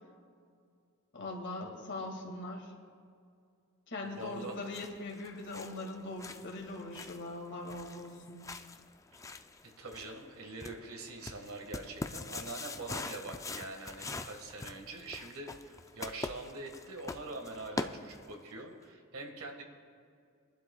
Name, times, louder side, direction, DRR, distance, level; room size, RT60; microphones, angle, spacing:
voice 1, 1.1-2.7 3.9-8.4, left 2 dB, 60° left, 0 dB, 2.0 m, -41 dB
voice 2, 4.0-4.6 9.8-19.6, right 2 dB, 85° right, 3 dB, 1.7 m, -44 dB
sound 1, 4.3-18.5, left 3 dB, 15° left, 0.3 m, -44 dB
24.0 x 11.5 x 2.3 m, 2.3 s
head